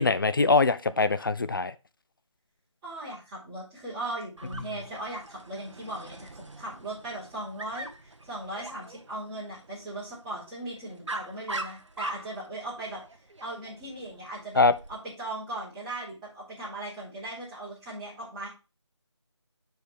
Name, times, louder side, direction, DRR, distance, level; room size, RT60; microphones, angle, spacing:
voice 1, 0.0-1.7 14.6-14.7, left 3 dB, 45° left, 14 dB, 0.6 m, -22 dB
voice 2, 2.8-13.0 13.4-14.6 14.9-18.5, right 1 dB, 10° right, -9 dB, 3.6 m, -38 dB
Dog, 4.4-14.9, right 2 dB, 75° right, 1.2 m, -43 dB
9.4 x 4.7 x 3.5 m, 0.30 s
figure-of-eight pair, 165°, 16 cm